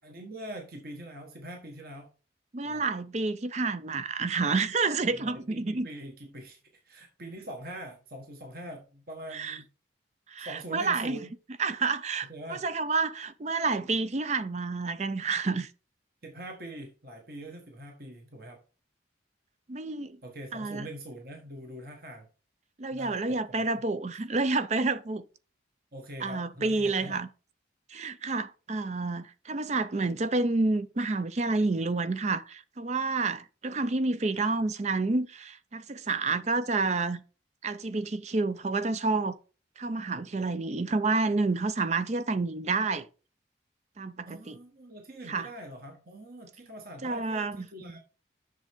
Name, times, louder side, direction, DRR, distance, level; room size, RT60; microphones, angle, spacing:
voice 1, 0.0-2.1 2.6-2.8 5.2-6.6 6.8-9.7 10.4-11.3 12.3-12.7 16.2-18.6 20.2-22.3 22.9-23.6 25.9-27.2 34.4-34.5 44.3-48.0, right 1 dB, 55° right, 1.6 m, -43 dB
voice 2, 2.5-5.9 9.3-9.6 10.3-11.2 11.6-15.7 19.7-20.2 20.5-20.9 22.8-25.2 26.2-27.3 27.9-37.2 37.6-39.4 39.8-43.1 44.0-44.6 45.3-45.5 47.0-47.7, right 3 dB, 40° right, 0.5 m, -29 dB
7.6 x 6.5 x 3.6 m
head